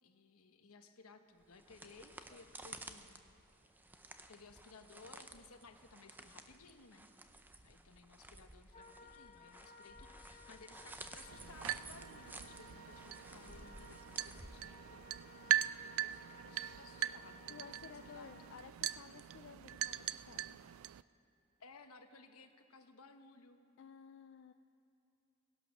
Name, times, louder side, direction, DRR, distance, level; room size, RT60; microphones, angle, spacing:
voice 1, 0.0-3.2 4.3-7.1 7.6-15.3 16.0-18.5 21.6-23.6, left 4 dB, 80° left, 7 dB, 1.0 m, -59 dB
sound 1, 1.4-15.1, right 2 dB, 10° right, 0.5 m, -55 dB
Wind instrument woodwind instrument, 8.7-18.6, left 3 dB, 30° left, 0.9 m, -59 dB
sound 2, 11.3-21.0, right 12 dB, 65° right, 0.3 m, -41 dB
voice 2, 17.5-20.7 23.8-24.5, left 6 dB, 55° left, 8 dB, 0.4 m, -55 dB
17.5 x 11.0 x 6.3 m, 2.8 s
head